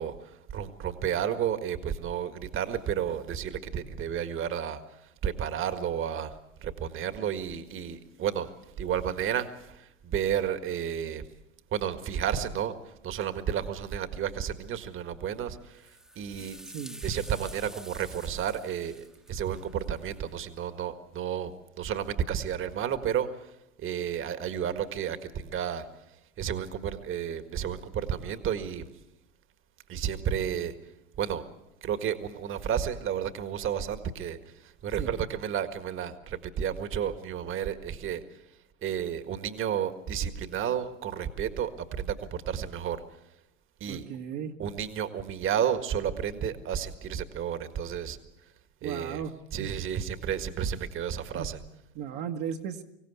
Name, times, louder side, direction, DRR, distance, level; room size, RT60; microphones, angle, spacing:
voice 1, 0.0-11.2 11.7-16.6 17.0-28.9 29.9-31.4 31.8-43.3 43.8-44.1 44.6-48.5 48.8-49.2 49.5-51.6, right 9 dB, 30° right, 9 dB, 1.7 m, -32 dB
sound 1, 15.7-20.6, equal, ahead, 1.3 m, -49 dB
voice 2, 16.7-17.0 35.0-35.1 43.9-44.5 48.8-49.3 49.6-49.7 51.3-51.5 51.9-52.8, right 8 dB, 50° right, 1 dB, 1.6 m, -36 dB
25.0 x 16.5 x 8.3 m, 0.90 s
hypercardioid pair, 95°, 39 cm